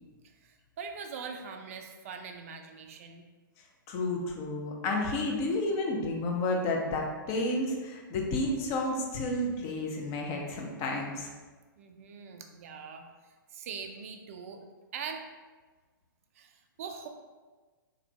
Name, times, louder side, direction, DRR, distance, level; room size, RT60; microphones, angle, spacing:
voice 1, 0.4-3.2 11.8-13.1 13.5-14.6 14.9-15.2 16.4-17.1, right 6 dB, 40° right, 5 dB, 0.4 m, -42 dB
voice 2, 3.9-11.3, left 2 dB, 25° left, 0 dB, 0.5 m, -31 dB
3.0 x 2.4 x 3.4 m, 1.4 s
figure-of-eight pair, 115°, 12 cm